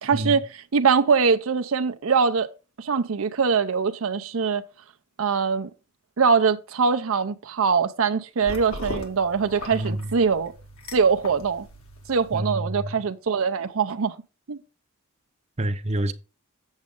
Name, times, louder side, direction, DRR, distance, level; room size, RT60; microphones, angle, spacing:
voice 1, 0.0-2.5 2.8-4.6 5.2-5.7 6.2-10.5 10.9-11.7 12.1-14.2 14.5-14.6, right 5 dB, 70° right, 0.6 m, -22 dB
sound 1, 8.4-12.4, equal, 75° left, 2.1 m, -39 dB
voice 2, 9.7-10.2 12.3-13.0 15.6-16.1, right 1 dB, 30° right, 0.7 m, -28 dB
7.4 x 7.2 x 3.7 m
head